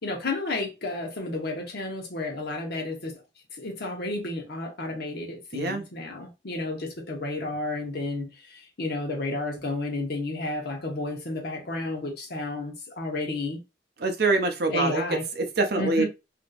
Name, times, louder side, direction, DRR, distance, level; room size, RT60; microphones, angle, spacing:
voice 1, 0.0-3.2 3.5-13.6 14.7-15.2 15.8-16.0, left 2 dB, 60° left, 1.0 m, -32 dB
voice 2, 5.5-5.9 14.0-16.0, right 3 dB, 60° right, 0.6 m, -25 dB
3.4 x 2.8 x 2.4 m
head